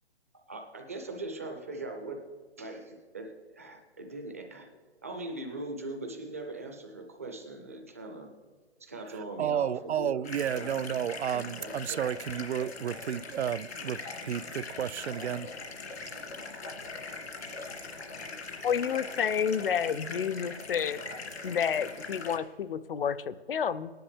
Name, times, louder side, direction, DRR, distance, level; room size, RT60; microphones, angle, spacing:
voice 1, 0.3-2.2 2.6-4.7 5.0-8.3 8.8-10.2 10.5-10.8 11.3-12.0, right 2 dB, 15° right, 4 dB, 0.4 m, -40 dB
voice 2, 9.4-15.5, right 9 dB, 80° right, 17 dB, 0.5 m, -32 dB
sound 1, 10.2-22.4, left 3 dB, 80° left, 2.2 m, -41 dB
voice 3, 18.6-21.0 21.4-23.9, left 7 dB, 55° left, 13 dB, 0.5 m, -30 dB
17.5 x 10.0 x 3.4 m, 1.5 s
hypercardioid pair, 160°, 32 cm